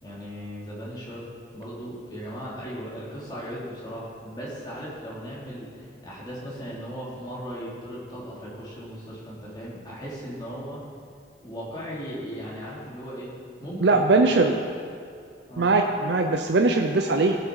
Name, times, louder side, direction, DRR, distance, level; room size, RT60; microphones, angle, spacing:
voice 1, 0.0-1.3 1.5-10.8 11.4-13.3 13.6-14.0 15.5-15.7, equal, 20° left, -7 dB, 3.1 m, -37 dB
voice 2, 13.8-14.5 15.6-17.4, right 3 dB, 70° right, 4 dB, 0.6 m, -20 dB
16.0 x 6.9 x 4.8 m, 2.3 s
head